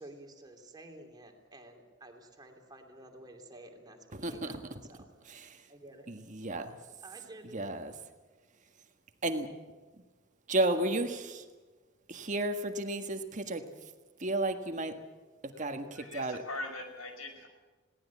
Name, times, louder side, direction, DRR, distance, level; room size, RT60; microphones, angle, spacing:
voice 1, 0.0-5.1 5.7-6.1 7.0-7.6, right 1 dB, 20° right, 4 dB, 2.9 m, -51 dB
voice 2, 4.1-4.8 5.3-5.7 6.1-6.8 7.5-7.9 9.2-9.5 10.5-11.4 12.1-13.9 14.2-15.0 15.4-16.4, right 2 dB, 35° right, 6 dB, 1.7 m, -33 dB
voice 3, 15.9-17.5, left 2 dB, 90° left, 5 dB, 5.7 m, -41 dB
21.0 x 18.0 x 8.4 m, 1.2 s
head